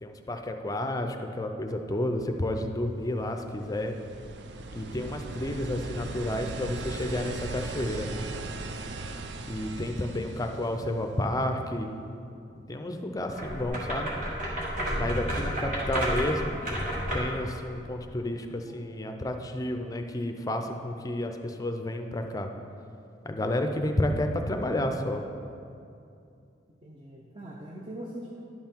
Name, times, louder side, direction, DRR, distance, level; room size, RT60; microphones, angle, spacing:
voice 1, 0.0-3.9 4.7-8.2 9.5-11.9 12.7-14.1 15.0-22.5 23.2-25.2, left 1 dB, 20° left, 5 dB, 0.5 m, -31 dB
sound 1, 3.0-11.5 13.6-13.7, right 3 dB, 65° right, 0.5 m, -39 dB
voice 2, 5.2-5.5 15.6-15.8 18.5-18.9 23.9-24.3 26.8-28.4, right 1 dB, 30° right, -2 dB, 0.7 m, -43 dB
sound 2, 13.3-17.4, equal, 45° right, 1.7 m, -31 dB
11.0 x 5.6 x 4.5 m, 2.6 s
head